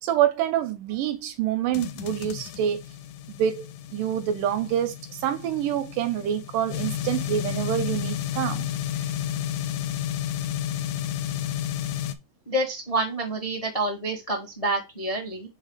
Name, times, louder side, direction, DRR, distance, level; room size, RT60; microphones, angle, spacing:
voice 1, 0.0-2.8 3.3-8.7, right 10 dB, 80° right, 2.1 m, -26 dB
sound 1, 1.7-12.1, left 11 dB, 85° left, 1.7 m, -32 dB
voice 2, 12.4-15.5, right 1 dB, 25° left, 0.7 m, -28 dB
5.5 x 4.0 x 4.9 m
omnidirectional pair, 4.1 m